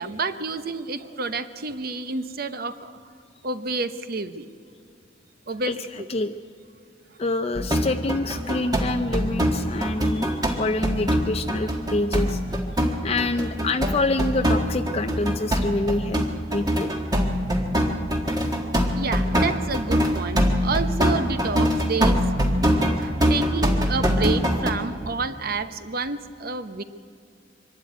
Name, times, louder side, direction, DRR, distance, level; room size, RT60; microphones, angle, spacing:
voice 1, 0.0-2.9 3.4-4.5 5.5-5.7 19.0-22.2 23.0-26.8, right 4 dB, 50° right, 11 dB, 0.8 m, -29 dB
voice 2, 5.6-6.3 7.2-12.6 13.0-16.2 16.5-16.9 18.5-18.6, left 2 dB, 30° left, 7 dB, 0.5 m, -27 dB
sound 1, 7.5-24.7, equal, 20° right, 1.5 m, -23 dB
24.0 x 12.0 x 9.4 m, 2.5 s
head